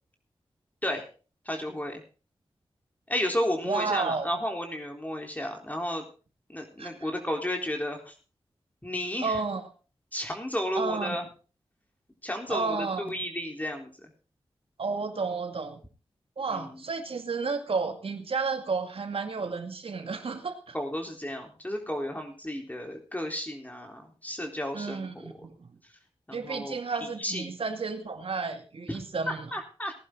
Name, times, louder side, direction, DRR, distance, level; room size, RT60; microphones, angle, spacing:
voice 1, 1.5-2.0 3.1-6.1 6.5-8.1 8.8-9.4 10.1-11.2 12.2-14.1 16.5-16.7 20.7-25.3 26.3-27.5 29.3-29.9, left 1 dB, 15° left, 3 dB, 3.9 m, -33 dB
voice 2, 3.6-4.3 6.8-7.1 9.2-9.6 10.8-11.2 12.5-13.2 14.8-15.8 16.4-20.7 24.7-25.7 26.3-29.5, right 4 dB, 70° right, 7 dB, 2.3 m, -32 dB
19.0 x 11.5 x 3.9 m, 0.36 s
cardioid pair, 45°, 10 cm